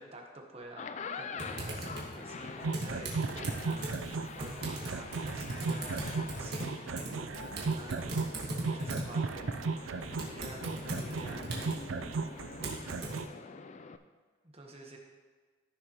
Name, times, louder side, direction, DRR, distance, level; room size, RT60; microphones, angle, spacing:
voice 1, 0.0-3.9 4.3-8.4 8.6-9.5 10.3-11.5 14.4-15.0, right 1 dB, 30° right, 1 dB, 1.2 m, -49 dB
sound 1, 0.6-14.0, left 5 dB, 35° left, 0.4 m, -46 dB
Typing, 1.4-13.2, right 1 dB, 55° right, 1.8 m, -41 dB
sound 2, 2.6-13.2, right 4 dB, 85° right, 0.5 m, -36 dB
14.5 x 6.4 x 3.0 m, 1.5 s
head